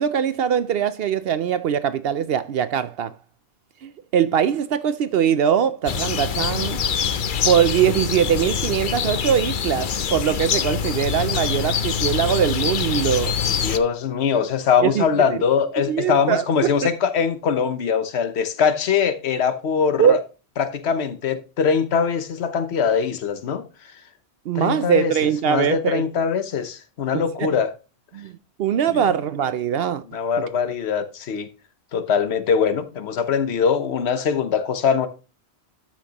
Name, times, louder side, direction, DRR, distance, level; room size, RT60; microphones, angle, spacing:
voice 1, 0.0-3.1 3.8-6.8 7.0-7.2 7.4-13.3 14.8-15.4 15.9-16.5 20.0-20.2 24.5-26.0 27.4-27.5 28.1-28.3 28.6-30.0, right 8 dB, 65° right, 0.7 m, -21 dB
sound 1, 5.9-13.8, left 7 dB, 55° left, 0.8 m, -24 dB
voice 2, 13.6-20.2 20.6-23.6 24.5-27.7 28.9-29.0 30.1-31.5 31.9-35.1, left 6 dB, 80° left, 1.2 m, -22 dB
13.0 x 5.8 x 2.9 m
omnidirectional pair, 1.1 m